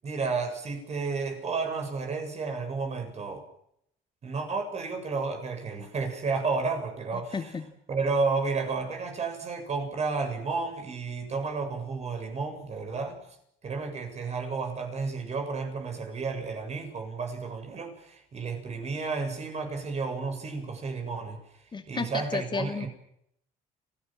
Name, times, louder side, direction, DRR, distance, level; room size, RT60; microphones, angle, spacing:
voice 1, 0.0-3.4 4.2-7.4 7.9-13.2 13.6-21.4 21.9-22.9, right 4 dB, 40° right, 5 dB, 7.6 m, -32 dB
voice 2, 7.1-7.6 21.7-22.9, left 4 dB, 25° left, 6 dB, 2.6 m, -33 dB
29.5 x 17.0 x 7.6 m, 0.74 s
cardioid pair, 110°, 17 cm